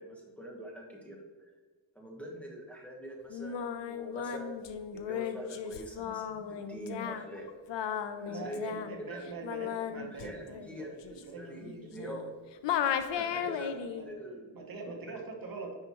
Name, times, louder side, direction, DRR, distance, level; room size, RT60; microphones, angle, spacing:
voice 1, 0.0-1.5 1.9-4.6 4.9-7.5 8.1-8.7 9.0-9.2 9.9-12.3 13.1-13.8 14.1-14.5 14.9-15.5, right 1 dB, 5° left, -2 dB, 1.2 m, -44 dB
Singing, 3.3-12.3 12.6-14.0, left 8 dB, 75° left, 0.7 m, -36 dB
voice 2, 8.3-11.9 13.3-14.1 14.5-15.8, right 4 dB, 50° right, 2 dB, 1.1 m, -44 dB
9.7 x 5.6 x 3.0 m, 1.4 s
wide cardioid pair, 130°, 44 cm